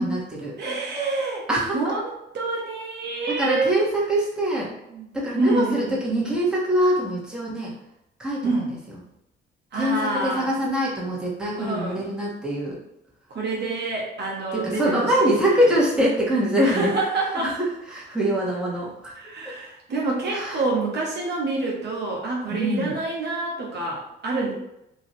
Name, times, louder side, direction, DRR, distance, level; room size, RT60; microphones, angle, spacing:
voice 1, 0.0-0.6 1.5-1.9 3.3-4.7 5.1-7.7 8.2-8.5 9.7-12.8 14.5-16.9 17.4-19.2 20.3-20.6 22.5-23.0, right 1 dB, 5° right, -6 dB, 1.3 m, -24 dB
voice 2, 0.6-1.5 1.7-2.1 2.3-3.8 4.9-5.1 5.3-5.9 8.4-8.7 9.7-10.5 11.6-12.0 13.3-15.6 16.6-17.5 19.2-24.5, right 3 dB, 60° right, -2 dB, 1.0 m, -27 dB
3.2 x 2.6 x 4.1 m, 0.85 s
cardioid pair, 90°, 20 cm